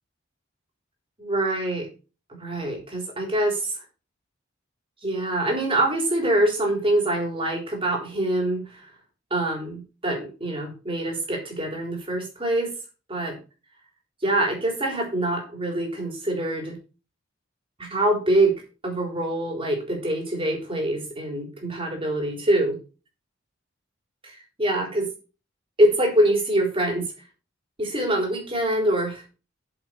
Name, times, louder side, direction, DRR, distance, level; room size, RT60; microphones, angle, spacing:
voice 1, 1.2-1.9 2.4-3.8 5.0-8.9 9.3-12.7 13.1-13.4 14.2-16.8 17.8-18.6 18.8-22.8 24.2-25.1 25.8-27.0 27.8-29.2, right 1 dB, 30° right, 0 dB, 3.8 m, -24 dB
7.9 x 7.4 x 4.5 m, 0.32 s
head